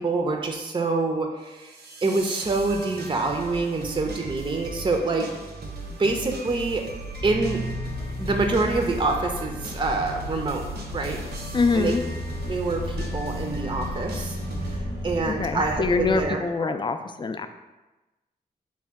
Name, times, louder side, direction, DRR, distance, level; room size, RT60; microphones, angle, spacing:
voice 1, 0.0-1.7 2.0-5.2 5.9-6.8 7.2-7.6 8.2-10.7 10.9-11.2 11.7-11.9 12.5-14.4 14.7-16.8, right 3 dB, 30° right, 3 dB, 0.5 m, -26 dB
sound 1, 1.5-14.8, right 2 dB, 80° right, 0.7 m, -38 dB
sound 2, 7.2-16.3, left 1 dB, 80° left, 0.8 m, -34 dB
voice 2, 11.5-12.0 15.3-17.5, left 4 dB, 30° left, 8 dB, 0.3 m, -24 dB
4.2 x 2.1 x 3.5 m, 1.1 s
cardioid pair, 45°, 17 cm